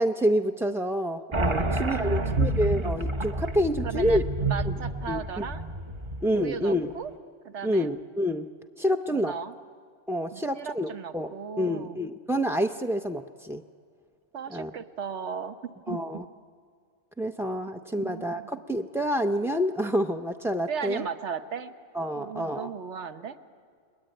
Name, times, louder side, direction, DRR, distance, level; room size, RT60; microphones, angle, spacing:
voice 1, 0.0-4.2 5.1-5.4 6.2-6.9 7.6-8.5 8.8-9.3 10.1-11.3 11.6-13.6 14.5-14.7 15.9-16.2 17.2-21.0 21.9-22.7, equal, 5° right, 5 dB, 0.3 m, -28 dB
sound 1, 1.3-6.6, right 2 dB, 25° right, 0.9 m, -29 dB
voice 2, 1.6-2.5 3.8-4.2 4.5-5.6 6.3-7.1 7.4-7.9 9.1-9.5 10.3-12.0 14.3-16.0 18.0-18.5 20.7-21.7 22.2-23.4, right 6 dB, 75° right, 8 dB, 1.4 m, -36 dB
30.0 x 21.5 x 9.0 m, 2.2 s
omnidirectional pair, 1.2 m